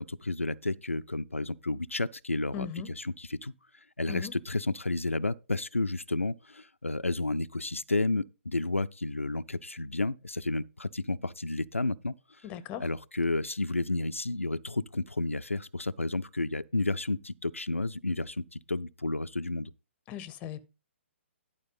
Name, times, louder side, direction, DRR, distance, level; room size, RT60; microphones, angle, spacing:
voice 1, 0.0-3.5 4.0-12.1 12.8-19.7, left 2 dB, 90° left, 0.4 m, -31 dB
voice 2, 2.5-2.9 4.1-4.3 12.4-12.9 20.1-20.7, left 9 dB, 20° left, 0.6 m, -39 dB
11.0 x 4.6 x 5.4 m
figure-of-eight pair, 125°, 7 cm